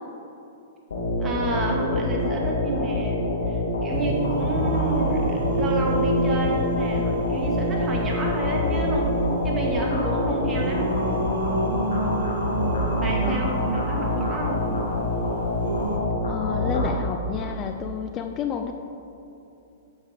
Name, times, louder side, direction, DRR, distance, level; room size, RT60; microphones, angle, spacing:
sound 1, 0.9-17.5, left 1 dB, 85° left, 2.5 m, -26 dB
voice 1, 1.2-3.2 3.5-10.9 13.0-14.6, right 2 dB, 20° right, -1 dB, 2.0 m, -29 dB
Singing, 3.9-16.0, right 2 dB, 70° right, 1.3 m, -30 dB
voice 2, 12.0-12.4 13.2-13.6 16.3-18.7, left 8 dB, 30° left, 6 dB, 0.6 m, -31 dB
9.4 x 7.4 x 5.1 m, 2.8 s
hypercardioid pair, 125°, 0 cm